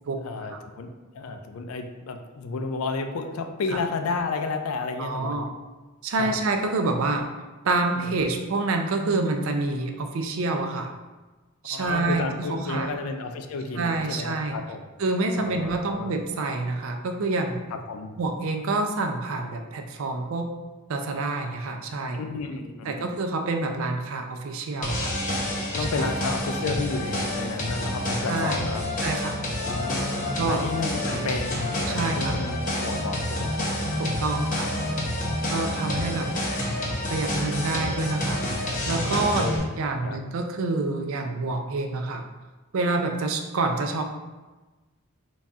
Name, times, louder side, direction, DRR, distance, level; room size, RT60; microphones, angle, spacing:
voice 1, 0.2-5.4 6.2-6.4 7.9-8.1 11.7-14.8 15.4-16.1 17.7-18.1 22.1-23.1 25.7-29.1 29.6-31.6 31.9-33.7 34.1-34.5 34.8-35.0 35.8-36.4 39.1-39.7 40.0-40.2, left 4 dB, 75° left, 6 dB, 0.4 m, -32 dB
voice 2, 5.0-5.5 6.0-7.2 7.6-10.9 11.6-12.9 13.8-14.6 15.0-17.6 18.2-20.5 20.9-22.2 22.9-25.1 25.8-26.1 28.3-28.7 29.0-29.4 30.3-30.6 31.1-31.3 31.9-32.4 34.0-34.7 35.5-36.3 37.1-38.4 38.9-39.5 39.8-42.3 42.7-44.0, right 3 dB, 65° right, 5 dB, 0.4 m, -27 dB
sound 1, 24.8-39.6, left 1 dB, 35° left, 0.7 m, -28 dB
4.0 x 2.3 x 3.5 m, 1.2 s
head